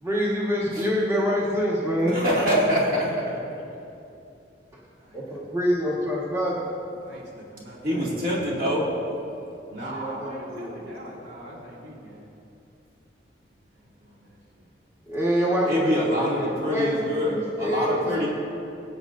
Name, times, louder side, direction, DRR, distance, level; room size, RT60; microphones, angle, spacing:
voice 1, 0.0-2.2 5.1-6.7 9.8-10.7 15.1-18.3, equal, 15° right, -6 dB, 1.5 m, -26 dB
voice 2, 2.0-3.1 7.8-8.9 15.7-18.3, equal, 50° right, -5 dB, 2.4 m, -24 dB
voice 3, 2.9-3.4 4.9-5.8 7.0-8.6 9.7-12.3 13.7-14.7, right 1 dB, 85° right, -5 dB, 2.6 m, -42 dB
20.5 x 8.7 x 2.6 m, 2.7 s
head